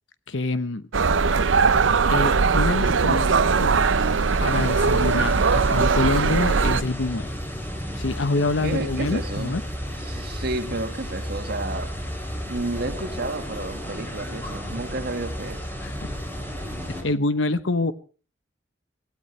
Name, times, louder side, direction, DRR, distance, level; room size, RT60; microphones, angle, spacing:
voice 1, 0.3-0.8 2.1-3.3 3.6-4.1 4.4-5.4 5.7-7.3 7.9-9.6 15.8-15.9 17.0-17.9, left 2 dB, 75° left, 0.9 m, -26 dB
sound 1, 0.9-6.8, right 4 dB, 85° right, 0.7 m, -20 dB
sound 2, 3.5-17.0, equal, 10° left, 4.3 m, -33 dB
voice 2, 8.6-9.6 10.0-11.9 12.5-15.6, right 2 dB, 55° right, 1.8 m, -31 dB
23.5 x 16.5 x 3.3 m
head